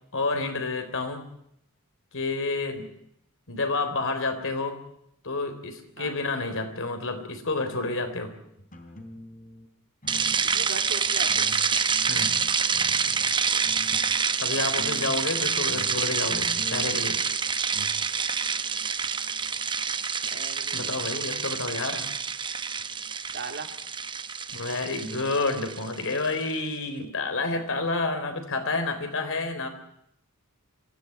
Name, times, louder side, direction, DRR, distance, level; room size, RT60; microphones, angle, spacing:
voice 1, 0.1-1.2 2.1-2.9 3.5-4.8 5.2-8.4 12.1-12.4 14.4-17.2 20.7-22.1 24.5-29.7, left 3 dB, 60° left, 7 dB, 3.7 m, -29 dB
sound 1, 8.6-9.7 10.0-10.9 11.3-14.3 14.5-17.9, left 1 dB, 35° left, 3.6 m, -44 dB
sound 2, 10.1-26.4, right 6 dB, 20° right, 0.8 m, -27 dB
voice 2, 10.4-11.6 14.5-14.9 20.3-21.3 23.3-23.7, right 4 dB, 50° right, 5 dB, 2.6 m, -39 dB
25.5 x 15.5 x 9.7 m, 0.75 s
head